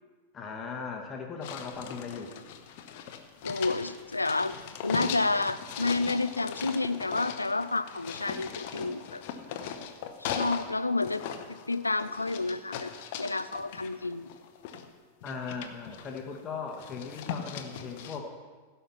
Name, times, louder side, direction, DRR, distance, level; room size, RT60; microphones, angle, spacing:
voice 1, 0.3-2.3 15.2-18.4, left 5 dB, 25° left, 1 dB, 1.4 m, -38 dB
sound 1, 1.4-10.7 11.0-14.8 15.2-16.4 16.7-18.2, left 8 dB, 50° left, 0.9 m, -39 dB
voice 2, 3.4-4.5 4.8-9.2 10.2-11.2 11.7-12.9 13.2-14.3, left 3 dB, 80° left, 14 dB, 0.4 m, -30 dB
16.0 x 5.7 x 5.8 m, 1.4 s
figure-of-eight pair, 90°, 0 cm